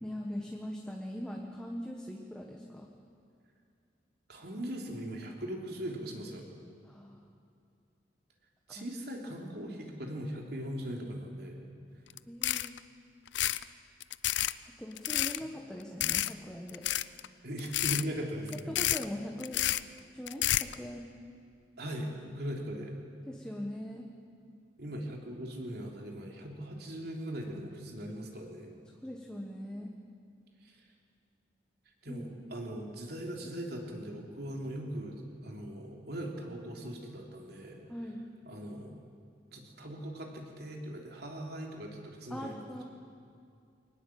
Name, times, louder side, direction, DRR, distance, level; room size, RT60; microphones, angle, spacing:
voice 1, 0.0-2.9 6.8-7.2 8.7-8.9 12.3-12.8 14.8-16.8 18.7-19.6 20.1-21.1 23.3-24.1 29.0-29.9 32.1-32.5 37.9-38.3 42.3-42.8, equal, 5° left, 0 dB, 1.4 m, -41 dB
voice 2, 4.3-6.4 8.7-11.7 17.4-18.8 21.8-23.0 24.8-28.7 30.6-30.7 32.0-37.8 38.4-39.0 39.5-42.8, equal, 60° right, 1 dB, 3.4 m, -40 dB
sound 1, 12.1-12.2 12.4-12.8 13.3-13.6 14.0-14.5 15.0-15.4 16.0-16.3 16.7-17.3 17.6-18.0 18.5-19.0 19.4-19.8 20.3-20.7, left 14 dB, 75° left, 0.5 m, -30 dB
23.0 x 19.5 x 7.6 m, 2.4 s
head